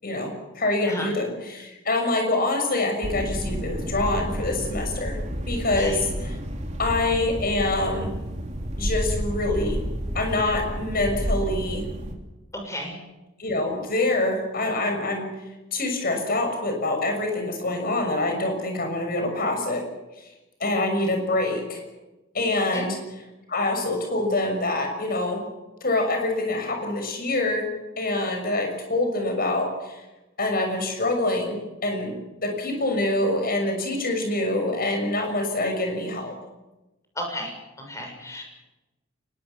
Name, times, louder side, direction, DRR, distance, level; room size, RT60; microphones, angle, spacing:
voice 1, 0.0-5.2 5.5-6.4 6.8-8.1 8.8-9.8 10.1-11.8 13.4-15.3 15.7-19.9 20.2-20.3 20.6-21.8 22.3-23.0 23.5-25.4 25.8-27.7 28.0-30.0 30.4-32.2 32.4-36.4, left 2 dB, 50° left, 4 dB, 6.4 m, -25 dB
sound 1, 3.0-12.1, equal, 35° right, 3.2 m, -30 dB
voice 2, 12.5-13.0 22.7-22.8 37.2-38.4, left 1 dB, 15° left, 2 dB, 6.9 m, -34 dB
24.0 x 21.0 x 7.1 m, 1.1 s
head